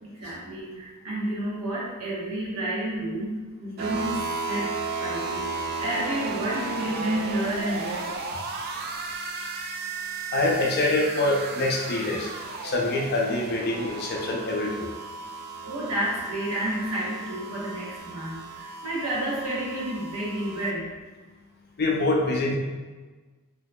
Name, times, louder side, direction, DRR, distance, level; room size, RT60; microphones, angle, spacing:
voice 1, 0.0-8.2 15.6-20.9, right 1 dB, 75° right, -6 dB, 1.1 m, -30 dB
sound 1, 3.8-20.7, right 3 dB, 45° right, 0.3 m, -34 dB
voice 2, 10.3-12.3 12.6-14.9 21.8-22.6, left 2 dB, 45° left, -1 dB, 0.5 m, -25 dB
3.9 x 2.8 x 2.2 m, 1.3 s
head